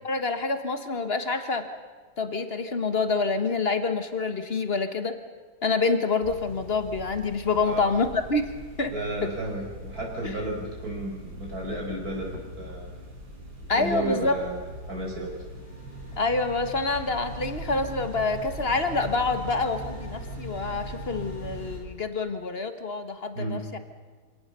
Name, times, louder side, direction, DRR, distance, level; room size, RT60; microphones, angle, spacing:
voice 1, 0.0-1.7 2.2-5.2 5.6-8.5 8.8-9.0 9.2-9.3 13.7-14.4 16.2-23.8, left 3 dB, 35° left, 8 dB, 1.4 m, -27 dB
sound 1, 6.2-21.8, right 1 dB, 70° right, 5.6 m, -40 dB
voice 2, 7.6-7.9 8.9-12.9 13.7-14.6 14.9-15.4 23.3-23.6, right 1 dB, 45° right, -2 dB, 5.6 m, -33 dB
26.5 x 18.0 x 6.8 m, 1.5 s
omnidirectional pair, 2.1 m